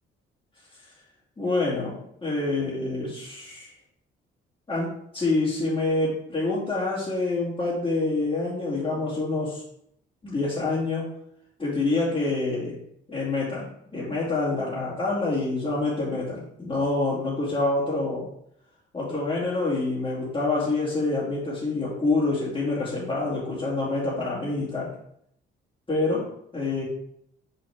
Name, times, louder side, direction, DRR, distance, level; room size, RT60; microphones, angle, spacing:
voice 1, 1.4-3.7 4.7-9.6 10.2-11.1 11.6-12.8 13.1-18.3 18.9-24.9 25.9-26.3 26.5-26.8, left 2 dB, 25° left, -10 dB, 2.6 m, -27 dB
5.9 x 5.4 x 3.6 m, 0.72 s
cardioid pair, 90°, 20 cm